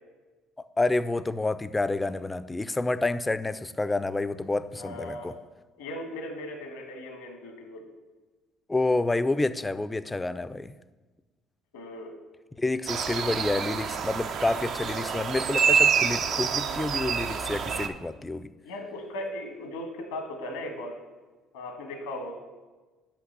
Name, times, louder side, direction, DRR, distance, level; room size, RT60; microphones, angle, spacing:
voice 1, 0.8-5.3 8.7-10.7 12.6-18.5, left 2 dB, 15° left, 13 dB, 0.4 m, -28 dB
voice 2, 4.8-5.4 5.8-7.8 11.7-12.1 18.6-21.0 21.5-22.3, left 1 dB, 85° left, 4 dB, 1.4 m, -37 dB
sound 1, 12.9-17.9, right 6 dB, 60° right, 0.5 m, -27 dB
5.9 x 5.4 x 6.6 m, 1.2 s
hypercardioid pair, 65°, 0 cm